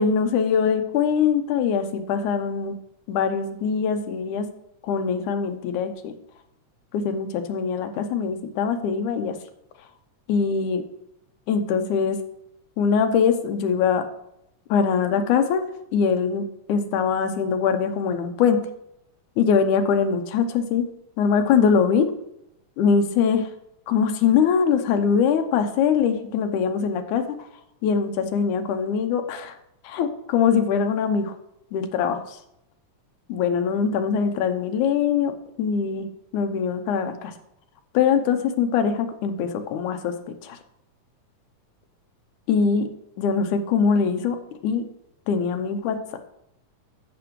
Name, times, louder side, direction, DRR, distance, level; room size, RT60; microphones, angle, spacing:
voice 1, 0.0-2.8 3.1-4.5 4.8-6.1 6.9-9.3 10.3-10.8 11.5-12.2 12.8-14.0 14.7-15.7 15.9-18.6 19.4-20.9 21.2-22.1 22.8-23.5 23.9-27.2 27.8-29.5 29.8-31.3 31.7-32.2 33.3-35.3 35.6-36.1 36.3-37.3 37.9-40.1 40.4-40.6 42.5-42.9 43.2-44.4 44.6-44.8 45.3-46.0, left 6 dB, 80° left, 7 dB, 2.1 m, -22 dB
13.5 x 6.0 x 3.1 m, 0.81 s
omnidirectional pair, 3.7 m